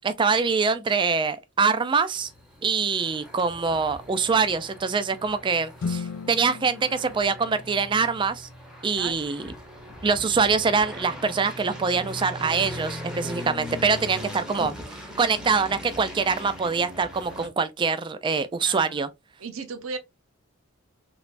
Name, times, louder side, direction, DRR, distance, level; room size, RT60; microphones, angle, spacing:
voice 1, 0.0-2.3 2.6-8.5 8.8-9.5 10.0-14.7 15.2-19.1, right 5 dB, 20° right, 0.3 m, -24 dB
sound 1, 2.1-17.5, left 1 dB, 5° right, 0.7 m, -40 dB
sound 2, 5.8-8.2, left 5 dB, 80° left, 0.4 m, -36 dB
voice 2, 18.6-19.0 19.4-20.0, right 4 dB, 65° right, 0.6 m, -36 dB
3.2 x 3.0 x 2.4 m
head